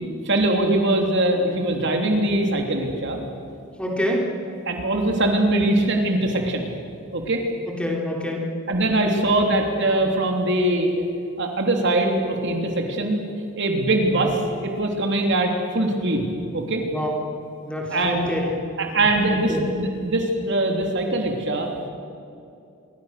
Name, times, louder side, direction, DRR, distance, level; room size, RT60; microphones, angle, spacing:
voice 1, 0.2-3.2 4.5-6.7 7.1-7.4 8.7-11.0 11.4-13.2 13.6-16.8 17.9-18.5 18.8-21.7, right 1 dB, 55° right, 2 dB, 3.1 m, -22 dB
voice 2, 3.8-4.3 7.7-8.5 16.9-17.1 17.6-18.5 19.0-19.6, left 1 dB, 5° left, -1 dB, 3.8 m, -27 dB
26.5 x 23.5 x 6.7 m, 2.7 s
head